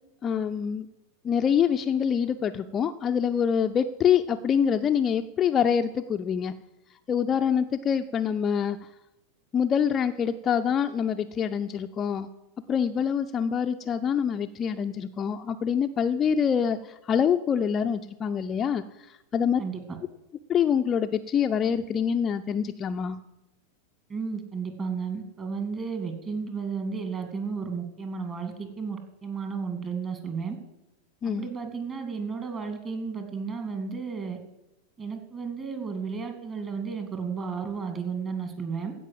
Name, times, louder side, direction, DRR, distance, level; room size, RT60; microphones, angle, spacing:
voice 1, 0.2-0.9 1.2-6.5 7.1-8.8 9.5-12.3 12.7-16.8 17.1-18.8 19.3-19.6 20.5-23.2 31.2-31.5, left 7 dB, 25° left, 6 dB, 0.5 m, -25 dB
voice 2, 24.1-30.6 31.4-34.4 35.0-38.9, right 5 dB, 25° right, 6 dB, 2.4 m, -33 dB
15.5 x 5.4 x 7.7 m, 0.93 s
figure-of-eight pair, 90°, 0 cm